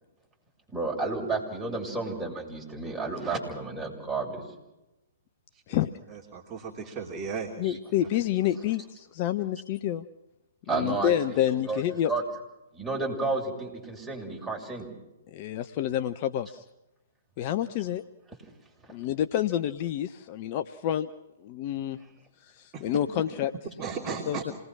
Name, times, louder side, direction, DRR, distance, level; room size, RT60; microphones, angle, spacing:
voice 1, 0.7-4.4 7.6-7.8 10.7-12.2 12.7-14.9, right 3 dB, 5° right, -4 dB, 7.3 m, -32 dB
voice 2, 6.1-7.5 22.7-23.0 23.8-24.4, right 5 dB, 20° right, -2 dB, 2.9 m, -36 dB
voice 3, 7.6-10.1 10.7-12.1 15.3-16.6 17.4-18.0 18.9-21.1 21.4-22.0 22.6-23.5 24.3-24.5, left 11 dB, 35° left, 10 dB, 0.7 m, -28 dB
27.5 x 20.0 x 6.1 m, 0.95 s
figure-of-eight pair, 115°, 0 cm